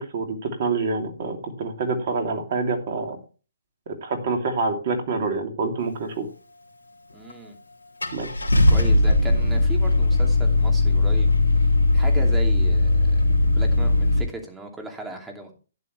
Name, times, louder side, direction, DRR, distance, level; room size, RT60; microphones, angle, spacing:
voice 1, 0.0-3.2 3.9-6.3 8.1-8.3, right 3 dB, 50° right, 4 dB, 3.0 m, -27 dB
voice 2, 7.1-7.6 8.5-11.3 11.9-15.5, right 2 dB, 10° right, 2 dB, 2.7 m, -37 dB
Car / Engine starting, 7.3-7.4 8.0-14.2, left 2 dB, 85° left, 2.6 m, -19 dB
12.0 x 10.0 x 3.3 m, 0.35 s
figure-of-eight pair, 135°, 0 cm